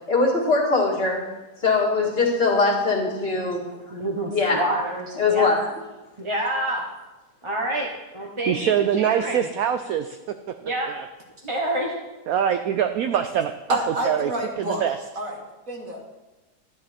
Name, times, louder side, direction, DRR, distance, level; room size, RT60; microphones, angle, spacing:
voice 1, 0.1-1.2 1.6-3.6 4.3-4.6 5.2-5.6, left 3 dB, 35° left, -3 dB, 2.1 m, -21 dB
voice 2, 3.9-5.5 6.2-6.8 7.4-7.9 8.1-9.5 10.6-10.9 11.4-11.9, right 1 dB, 20° right, -2 dB, 0.9 m, -27 dB
voice 3, 8.5-10.2 10.9-11.1 12.3-13.5 14.0-14.3 14.6-15.0, right 9 dB, 70° right, 8 dB, 0.9 m, -23 dB
voice 4, 13.7-14.8 15.2-16.0, right 1 dB, 50° right, 0 dB, 2.2 m, -29 dB
12.0 x 9.9 x 4.3 m, 1.1 s
omnidirectional pair, 1.9 m